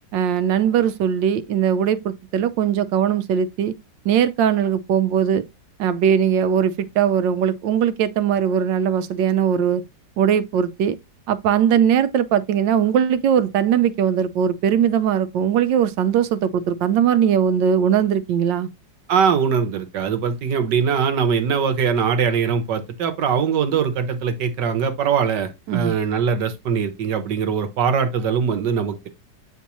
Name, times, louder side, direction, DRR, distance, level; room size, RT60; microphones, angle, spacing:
voice 1, 0.1-3.7 4.0-5.4 5.8-9.8 10.2-11.0 11.3-18.7 25.7-25.9, right 8 dB, 90° right, 1.4 m, -20 dB
voice 2, 19.1-29.1, right 6 dB, 75° right, 1.6 m, -21 dB
8.3 x 4.4 x 3.0 m
omnidirectional pair, 1.9 m